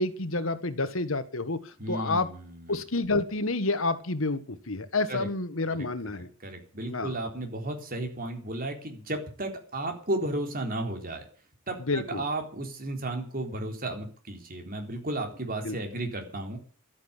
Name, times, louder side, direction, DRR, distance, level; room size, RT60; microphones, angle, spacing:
voice 1, 0.0-2.3 2.7-6.3 6.9-7.2 11.9-12.2 15.6-15.8, left 2 dB, 70° left, 12 dB, 1.6 m, -29 dB
voice 2, 1.8-2.8 5.1-5.3 5.7-5.9 6.2-11.2 11.7-16.6, right 2 dB, 45° right, 4 dB, 4.0 m, -34 dB
13.0 x 9.4 x 10.0 m, 0.42 s
head